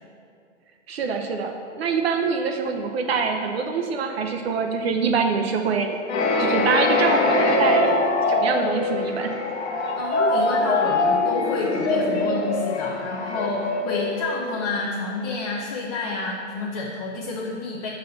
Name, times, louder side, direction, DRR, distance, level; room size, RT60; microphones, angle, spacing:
voice 1, 0.9-6.0 6.4-8.0 8.3-9.3, right 5 dB, 55° right, 4 dB, 0.6 m, -24 dB
sound 1, 6.1-14.8, left 2 dB, 60° left, 1.0 m, -23 dB
voice 2, 9.7-17.9, left 3 dB, 30° left, -3 dB, 0.6 m, -29 dB
5.1 x 4.0 x 5.5 m, 2.3 s
hypercardioid pair, 140°, 37 cm